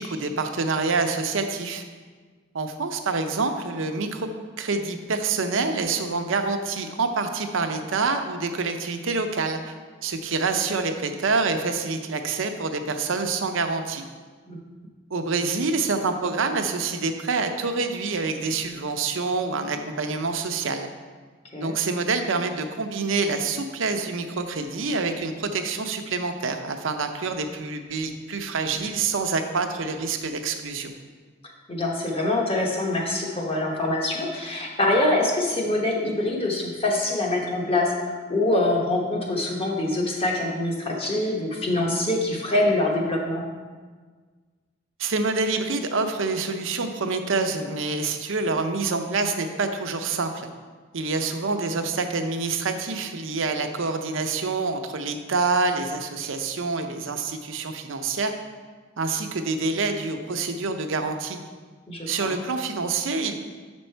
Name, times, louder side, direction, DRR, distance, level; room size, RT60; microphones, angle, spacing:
voice 1, 0.0-1.8 2.5-4.3 4.6-14.0 15.1-20.9 21.6-30.9 45.0-50.5 50.9-58.3 59.0-61.4 62.1-63.4, right 4 dB, 75° right, 6 dB, 0.6 m, -27 dB
voice 2, 31.7-37.9 38.3-43.4 61.9-62.4, left 2 dB, 30° left, -1 dB, 1.1 m, -24 dB
7.4 x 5.3 x 4.5 m, 1.5 s
head